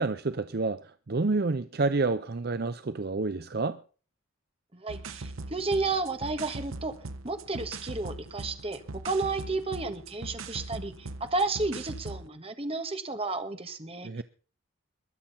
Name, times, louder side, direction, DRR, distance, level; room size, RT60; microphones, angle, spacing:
voice 1, 0.0-3.8 14.0-14.2, right 3 dB, 50° right, 0.6 m, -29 dB
voice 2, 4.7-6.9 7.2-14.2, right 3 dB, 30° right, 1.5 m, -32 dB
sound 1, 4.9-12.3, right 2 dB, 80° right, 1.1 m, -41 dB
22.0 x 7.7 x 5.6 m
head